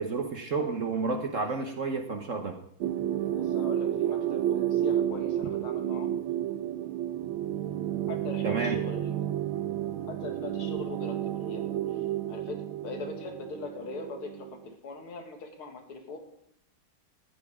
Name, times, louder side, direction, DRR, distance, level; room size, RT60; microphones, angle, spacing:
voice 1, 0.0-2.6 8.4-8.8, right 4 dB, 50° right, 5 dB, 0.9 m, -31 dB
voice 2, 1.4-1.7 3.3-6.1 8.1-9.1 10.1-16.2, left 4 dB, 90° left, 3 dB, 2.8 m, -41 dB
sound 1, 2.8-14.7, right 11 dB, 75° right, 1.4 m, -31 dB
15.0 x 10.5 x 3.6 m, 0.74 s
omnidirectional pair, 2.3 m